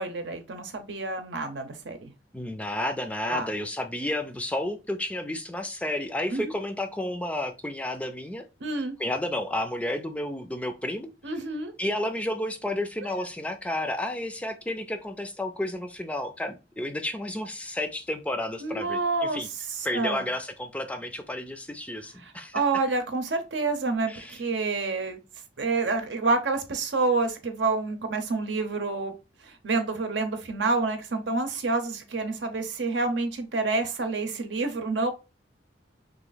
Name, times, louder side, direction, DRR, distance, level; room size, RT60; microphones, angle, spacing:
voice 1, 0.0-2.1 3.3-3.5 6.3-6.5 8.6-9.0 11.2-11.7 18.6-19.4 19.7-20.3 22.2-25.2 25.6-29.1 29.4-35.1, right 3 dB, 85° right, 6 dB, 0.8 m, -28 dB
voice 2, 2.3-8.4 9.0-11.1 11.8-19.5 19.8-22.6 24.1-24.4, left 1 dB, 10° left, 7 dB, 0.4 m, -31 dB
3.0 x 2.6 x 3.9 m, 0.28 s
head